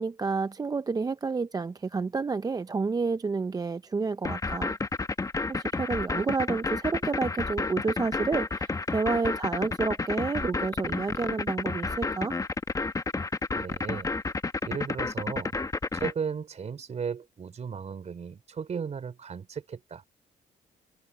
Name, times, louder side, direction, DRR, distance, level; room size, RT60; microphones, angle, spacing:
voice 1, 0.0-4.8 5.5-12.4, right 4 dB, 25° right, 0.5 m, -30 dB
sound 1, 4.2-16.1, left 3 dB, 20° left, 0.9 m, -30 dB
voice 2, 13.5-14.1 14.6-15.5 15.9-20.0, right 6 dB, 45° right, 3.4 m, -35 dB
cardioid pair, 95°, 16 cm